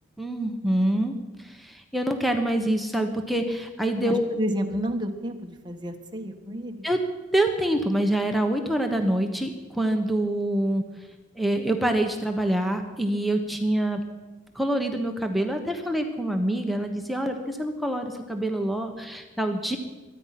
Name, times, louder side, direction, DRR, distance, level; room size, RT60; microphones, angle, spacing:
voice 1, 0.2-4.4 6.8-7.0 7.3-10.8 11.4-14.0 14.5-19.8, right 1 dB, ahead, 3 dB, 1.1 m, -26 dB
voice 2, 4.0-6.9, equal, 25° right, 3 dB, 1.5 m, -30 dB
23.0 x 9.8 x 5.9 m, 1.2 s
head